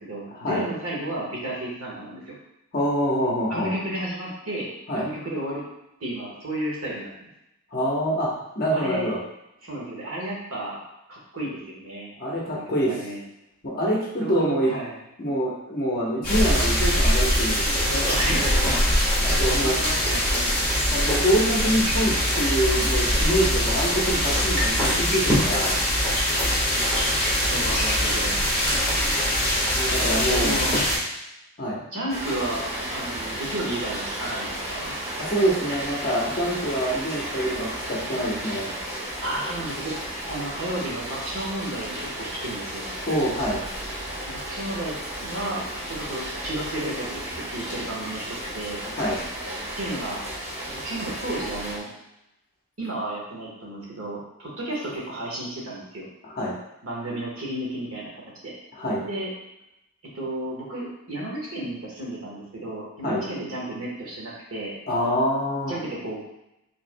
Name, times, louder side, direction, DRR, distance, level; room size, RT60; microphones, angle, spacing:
voice 1, 0.0-2.4 3.5-4.7 4.9-5.6 6.0-7.3 8.7-9.1 9.6-10.8 11.1-12.1 12.4-13.2 14.2-14.9 17.9-18.8 19.5-20.6 24.6-25.3 26.7-27.0 27.4-28.8 30.4-30.8 31.9-32.6 32.9-34.9 39.2-42.9 44.3-45.6 45.9-48.8 49.7-50.2 50.7-51.9 52.8-56.1 56.8-58.1 58.4-58.5 59.0-59.3 60.1-64.7 65.5-66.2, right 1 dB, 65° right, -4 dB, 1.3 m, -33 dB
voice 2, 2.7-3.7 4.9-5.0 7.7-9.2 12.2-12.9 13.6-14.7 15.2-17.7 19.2-19.8 20.9-25.8 29.7-30.6 31.6-31.8 35.2-38.7 43.1-43.6 48.9-49.2 56.2-56.5 58.7-59.0 63.0-63.2 64.9-65.8, equal, 40° left, -4 dB, 1.0 m, -25 dB
sound 1, 16.2-31.0, equal, 10° left, 1.4 m, -22 dB
Rain, 32.1-51.8, right 1 dB, 30° right, 1.0 m, -33 dB
4.7 x 3.4 x 2.2 m, 0.87 s
head